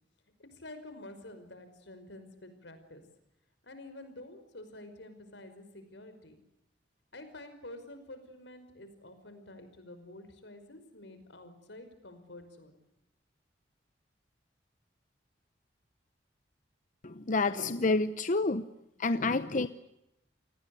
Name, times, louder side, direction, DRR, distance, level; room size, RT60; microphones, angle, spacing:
voice 1, 0.4-3.0 3.6-6.4 7.1-12.8, left 1 dB, 85° left, 9 dB, 5.3 m, -49 dB
voice 2, 17.0-18.6 19.0-19.7, left 3 dB, 45° left, 12 dB, 0.9 m, -28 dB
29.0 x 19.0 x 8.4 m, 0.87 s
head